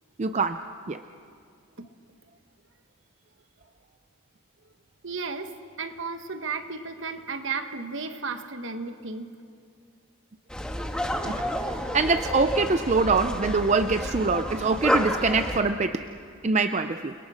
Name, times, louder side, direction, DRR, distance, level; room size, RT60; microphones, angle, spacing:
voice 1, 0.2-0.6 0.9-1.0 11.2-16.0 16.4-17.1, right 4 dB, 30° right, 9 dB, 0.5 m, -24 dB
voice 2, 5.0-5.5 5.8-9.3, right 4 dB, 60° right, 8 dB, 1.4 m, -33 dB
sound 1, 10.5-15.6, equal, 5° left, 1.4 m, -30 dB
29.5 x 21.5 x 6.4 m, 2.4 s
head